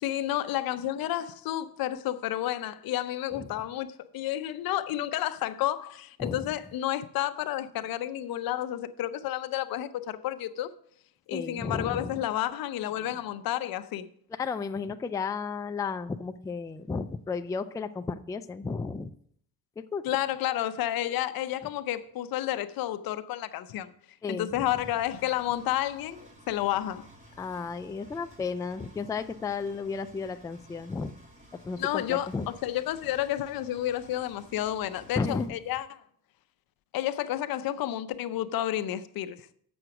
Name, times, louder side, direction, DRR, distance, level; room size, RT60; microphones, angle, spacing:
voice 1, 0.0-10.7 11.3-14.1 20.0-23.9 24.3-26.2 26.5-27.1 31.8-35.9 36.9-39.4, left 13 dB, 70° left, 0.7 m, -31 dB
voice 2, 11.3-12.2 14.4-19.1 19.9-20.0 24.2-24.7 27.4-31.1 31.6-32.5 35.2-35.6, left 4 dB, 10° left, 0.3 m, -33 dB
Engine, 24.7-35.5, equal, 20° right, 3.0 m, -54 dB
7.8 x 6.3 x 5.9 m
cardioid pair, 115°, 37 cm